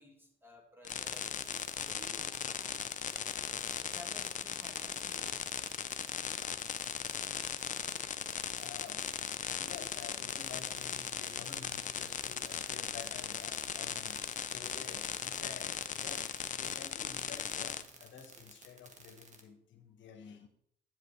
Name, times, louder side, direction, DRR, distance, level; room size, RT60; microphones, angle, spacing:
voice 1, 0.0-1.4 1.9-3.3 3.8-6.4, left 1 dB, 10° right, 2 dB, 1.8 m, -56 dB
sound 1, 0.8-17.8, left 8 dB, 40° left, 0.5 m, -38 dB
sound 2, 0.9-19.4, right 4 dB, 35° right, 1.5 m, -55 dB
voice 2, 8.5-20.5, left 7 dB, 70° left, 5 dB, 1.1 m, -51 dB
9.0 x 7.8 x 3.2 m, 0.69 s
cardioid pair, 90°, 20 cm